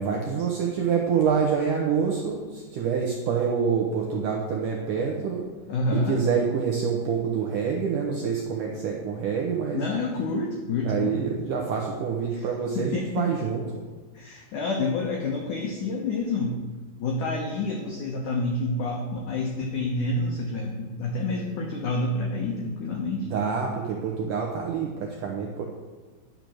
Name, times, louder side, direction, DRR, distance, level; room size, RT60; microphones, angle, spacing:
voice 1, 0.0-5.4 5.9-9.8 10.8-13.8 23.2-25.6, right 6 dB, 80° right, -1 dB, 1.8 m, -26 dB
voice 2, 5.7-6.2 9.7-11.2 12.3-12.5 12.8-13.3 14.1-16.6 17.0-23.3, left 2 dB, 90° left, 0 dB, 1.8 m, -28 dB
10.5 x 6.8 x 6.2 m, 1.4 s
omnidirectional pair, 5.2 m